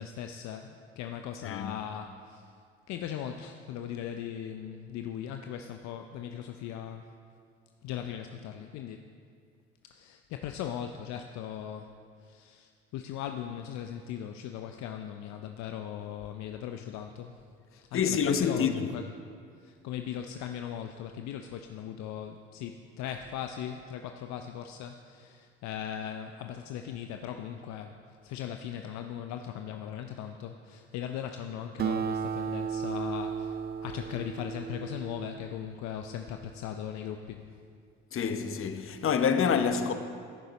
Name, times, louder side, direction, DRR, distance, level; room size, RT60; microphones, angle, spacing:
voice 1, 0.0-2.5 2.9-7.0 7.8-9.1 9.9-11.9 12.2-17.4 17.7-19.1 19.6-28.0 28.2-37.4, left 9 dB, 65° left, 0.6 m, -39 dB
voice 2, 1.4-1.8 17.9-18.8 38.1-39.9, left 7 dB, 45° left, 0.9 m, -27 dB
Acoustic guitar, 31.8-36.6, right 7 dB, 35° right, 0.4 m, -35 dB
14.5 x 6.8 x 4.0 m
hypercardioid pair, 60°, 30 cm